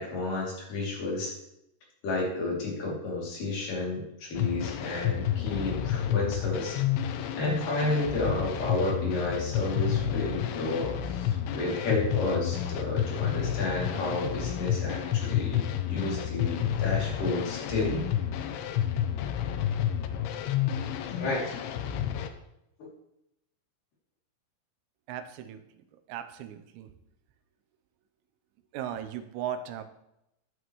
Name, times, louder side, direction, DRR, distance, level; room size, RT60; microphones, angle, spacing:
voice 1, 0.0-1.4 2.0-6.8 7.4-18.0 21.2-21.6, left 2 dB, 45° left, -4 dB, 4.0 m, -31 dB
sound 1, 4.3-22.3, left 10 dB, 80° left, 2.7 m, -30 dB
voice 2, 25.1-25.6 26.1-26.9 28.7-29.8, right 9 dB, 85° right, 8 dB, 3.5 m, -37 dB
14.5 x 9.7 x 3.1 m, 0.83 s
omnidirectional pair, 6.0 m